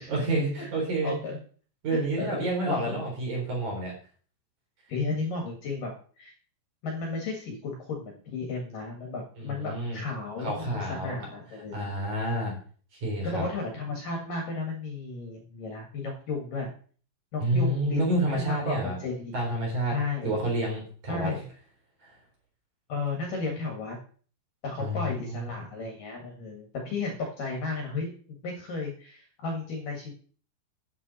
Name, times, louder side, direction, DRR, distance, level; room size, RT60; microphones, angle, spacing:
voice 1, 0.1-1.1 1.8-3.9 9.4-10.0 10.4-11.1 11.7-12.5 12.9-13.4 17.4-19.0 19.3-19.9 20.2-21.3 22.0-22.1 24.8-25.4, right 1 dB, 40° right, -2 dB, 4.9 m, -29 dB
voice 2, 1.0-1.4 1.9-3.0 4.9-6.3 6.8-11.9 13.2-16.7 17.3-19.3 19.9-20.4 21.1-21.4 22.9-24.0 24.6-28.1 28.4-30.1, left 3 dB, 55° left, 1 dB, 2.8 m, -34 dB
11.0 x 8.7 x 4.2 m, 0.43 s
omnidirectional pair, 5.7 m